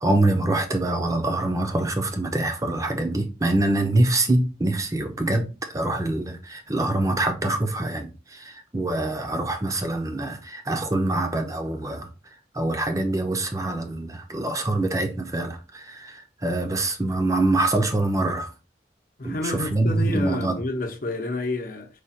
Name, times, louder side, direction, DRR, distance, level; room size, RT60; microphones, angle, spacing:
voice 1, 0.0-12.1 12.5-18.5 19.2-20.6, right 2 dB, 20° right, 0.6 m, -25 dB
voice 2, 19.2-21.9, left 2 dB, 50° left, 0.8 m, -29 dB
4.9 x 2.4 x 4.2 m
head